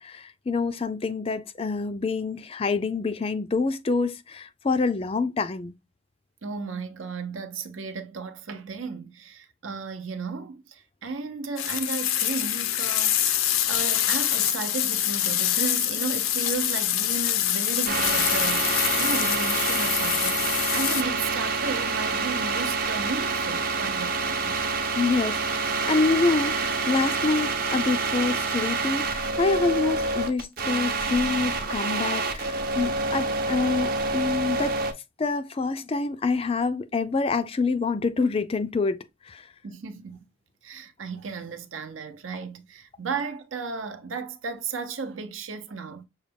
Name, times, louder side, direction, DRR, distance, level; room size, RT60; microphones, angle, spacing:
voice 1, 0.0-5.7 24.9-34.8 35.2-39.0 39.2-39.5, left 4 dB, 30° left, 0.3 m, -26 dB
voice 2, 6.4-13.2 13.7-24.7 39.6-40.2 40.6-46.1, right 4 dB, 75° right, 0.7 m, -34 dB
sound 1, 11.6-21.0, left 11 dB, 90° left, 0.5 m, -25 dB
sound 2, 17.9-34.9, right 3 dB, 45° right, 0.7 m, -27 dB
6.3 x 2.2 x 3.3 m
head